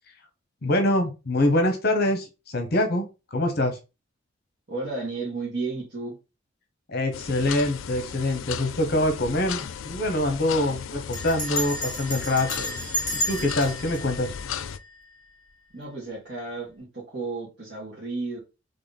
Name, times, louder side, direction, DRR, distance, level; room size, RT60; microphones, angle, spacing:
voice 1, 0.6-3.0 3.3-3.8 6.9-12.8 13.1-14.3, left 1 dB, 50° left, 0.9 m, -25 dB
voice 2, 4.7-6.2 15.7-18.4, right 3 dB, 55° right, 1.6 m, -33 dB
sound 1, 7.1-14.8, left 8 dB, 85° left, 0.4 m, -36 dB
Bell, 9.0-9.4 9.6-9.7 10.0-10.3 11.1-15.2, equal, 20° left, 2.0 m, -32 dB
3.8 x 3.4 x 4.1 m
head